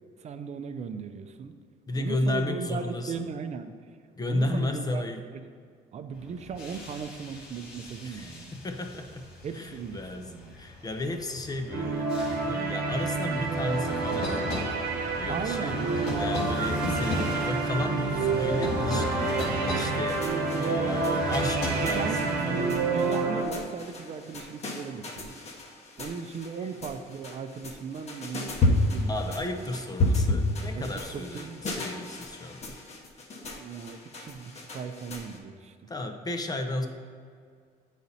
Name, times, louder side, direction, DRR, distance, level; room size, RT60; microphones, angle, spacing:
voice 1, 0.2-1.5 1.9-3.7 4.3-5.0 5.3-5.5 5.9-8.6 9.4-10.6 15.3-16.3 20.4-20.9 21.8-22.2 22.7-25.4 26.0-29.7 30.7-31.6 33.4-35.9, right 6 dB, 40° right, 9 dB, 0.5 m, -38 dB
voice 2, 1.9-3.3 4.2-5.2 8.0-9.3 9.5-10.3 10.6-12.1 12.4-14.8 15.2-15.8 16.2-19.4 19.7-20.3 20.6-22.8 29.1-32.8 35.9-36.9, left 2 dB, 20° left, 5 dB, 0.5 m, -33 dB
sound 1, 6.1-23.1, left 2 dB, 75° left, 1.7 m, -36 dB
sound 2, 11.7-23.4, right 4 dB, 65° right, 1.0 m, -29 dB
sound 3, 19.0-35.4, left 2 dB, 40° left, 1.0 m, -33 dB
8.2 x 4.2 x 4.1 m, 2.2 s
cardioid pair, 110°, 17 cm